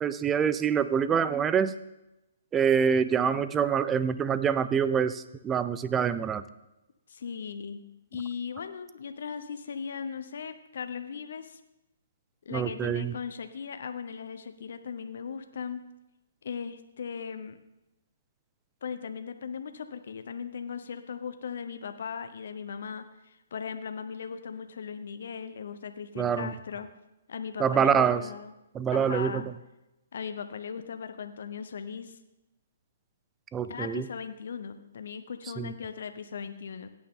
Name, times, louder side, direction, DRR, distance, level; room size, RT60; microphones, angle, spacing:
voice 1, 0.0-1.7 2.5-6.4 12.5-13.1 26.2-26.5 27.6-28.2 28.7-29.4 33.5-34.0 35.6-35.7, right 7 dB, 15° right, 13 dB, 0.5 m, -25 dB
voice 2, 7.1-7.8 8.1-11.6 12.4-15.8 16.4-17.6 18.8-26.9 27.3-28.5 28.9-29.5 30.1-32.2 33.7-36.9, left 6 dB, 70° left, 9 dB, 0.9 m, -38 dB
17.0 x 9.3 x 3.8 m, 0.93 s
hypercardioid pair, 150°, 0 cm